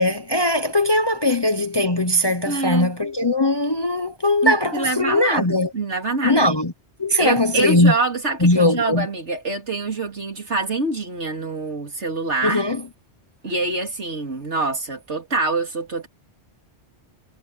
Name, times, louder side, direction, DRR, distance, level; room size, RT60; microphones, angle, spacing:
voice 1, 0.0-5.7 6.2-6.7 7.0-7.9 8.4-9.1 12.4-12.8, left 1 dB, 25° left, 0.8 m, -19 dB
voice 2, 2.4-2.9 4.4-6.5 7.2-12.6 13.4-16.1, right 3 dB, 85° right, 3.4 m, -25 dB
omnidirectional pair, 1.1 m